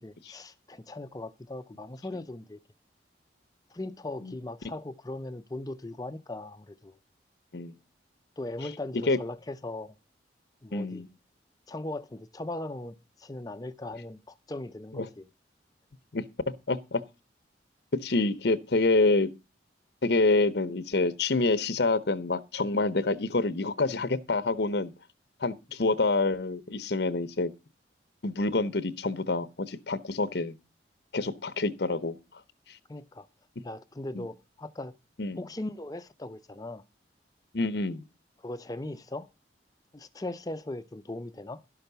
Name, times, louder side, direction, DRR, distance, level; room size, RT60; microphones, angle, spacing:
voice 1, 0.0-2.6 3.7-7.0 8.4-9.9 10.6-11.1 11.7-15.3 32.9-33.3 33.6-34.9 35.4-36.8 38.4-39.3 39.9-41.6, left 2 dB, 20° left, 0.5 m, -39 dB
voice 2, 10.7-11.1 14.9-15.1 16.1-16.2 16.7-17.0 18.0-19.3 20.0-24.9 25.4-27.5 28.2-30.6 31.1-32.2 34.1-34.2 35.2-35.4 37.5-38.0, left 3 dB, 65° left, 0.8 m, -27 dB
11.5 x 5.9 x 6.7 m
head